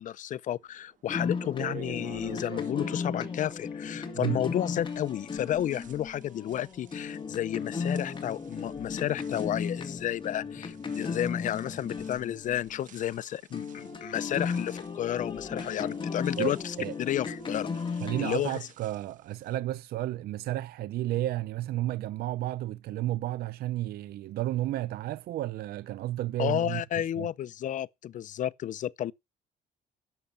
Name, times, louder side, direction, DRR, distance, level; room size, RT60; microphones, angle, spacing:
voice 1, 0.0-18.6 26.4-29.1, left 11 dB, 50° left, 0.5 m, -32 dB
sound 1, 0.8-0.9 1.4-4.5 4.8-19.6, right 8 dB, 50° right, 1.5 m, -51 dB
sound 2, 1.1-13.1 13.5-18.3, left 5 dB, 30° left, 2.1 m, -35 dB
voice 2, 18.0-27.3, right 14 dB, 65° right, 0.6 m, -32 dB
10.5 x 6.5 x 7.1 m
cardioid pair, 110°, 17 cm